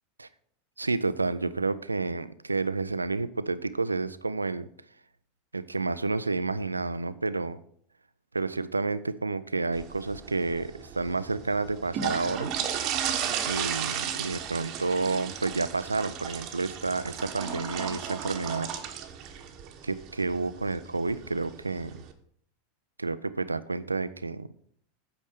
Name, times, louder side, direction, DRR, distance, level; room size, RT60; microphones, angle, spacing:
voice 1, 0.8-4.7 5.5-7.6 8.3-12.5 13.5-18.7 19.8-22.0 23.0-24.5, right 3 dB, 85° right, 15 dB, 0.4 m, -30 dB
sound 1, 9.7-22.1, right 8 dB, 45° right, 1.1 m, -35 dB
8.5 x 5.3 x 6.4 m, 0.63 s
figure-of-eight pair, 85°, 0 cm